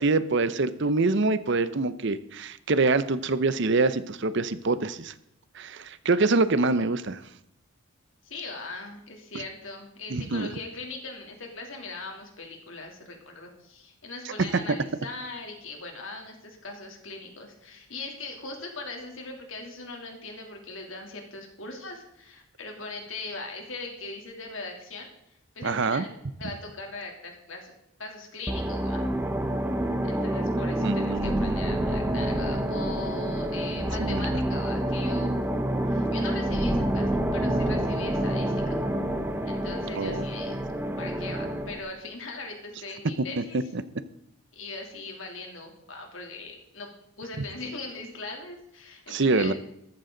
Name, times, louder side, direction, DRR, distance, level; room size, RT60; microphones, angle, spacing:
voice 1, 0.0-5.1 5.6-7.2 10.1-10.5 25.6-26.0 30.8-31.6 34.0-34.4 39.9-40.2 43.4-43.5 43.7-43.8 49.1-49.5, right 3 dB, 55° right, 14 dB, 0.7 m, -25 dB
voice 2, 8.2-25.1 25.5-26.1 26.4-27.7 28.0-29.1 30.0-35.4 35.9-38.8 39.4-40.6 41.0-43.6 44.5-46.9 47.2-49.5, left 3 dB, 65° left, 2 dB, 3.1 m, -40 dB
sound 1, 28.5-41.8, right 1 dB, 10° right, 1.0 m, -28 dB
14.5 x 12.5 x 3.9 m, 0.80 s
head